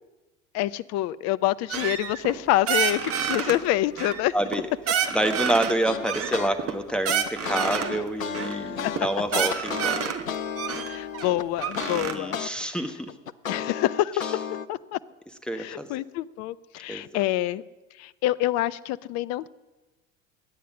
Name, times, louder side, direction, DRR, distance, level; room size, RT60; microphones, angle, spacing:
voice 1, 0.5-4.3 8.8-8.9 9.3-9.7 10.9-12.4 12.6-12.8 13.5-14.1 14.7-15.0 15.5-17.6 18.0-19.5, left 14 dB, 40° left, 18 dB, 0.6 m, -27 dB
sound 1, 1.7-2.4 2.7-3.6 4.0-4.6 4.9-5.7 6.0-8.0 8.3-8.6 8.9-9.0 9.3-10.2 10.6-12.1, right 8 dB, 35° right, 1.5 m, -28 dB
voice 2, 4.3-4.7 5.1-10.1 11.9-13.0 15.5-15.9 16.9-17.0, right 1 dB, ahead, 5 dB, 1.2 m, -27 dB
sound 2, 5.8-6.5 6.9-12.5 12.9-14.7, left 8 dB, 85° left, 0.6 m, -33 dB
21.0 x 9.3 x 6.2 m, 1.2 s
figure-of-eight pair, 70°, 39 cm